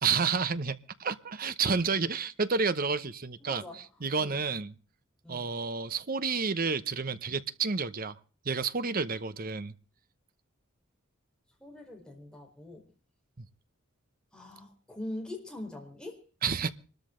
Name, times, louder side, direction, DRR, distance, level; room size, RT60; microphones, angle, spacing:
voice 1, 0.0-3.6 4.0-4.7 5.3-8.2 8.4-9.7 16.4-16.7, right 5 dB, 45° right, 0.9 m, -30 dB
voice 2, 3.4-3.8 4.2-4.4 5.2-5.5 11.6-12.9 14.3-16.2, left 1 dB, 5° left, 4.1 m, -43 dB
25.5 x 13.0 x 3.8 m
head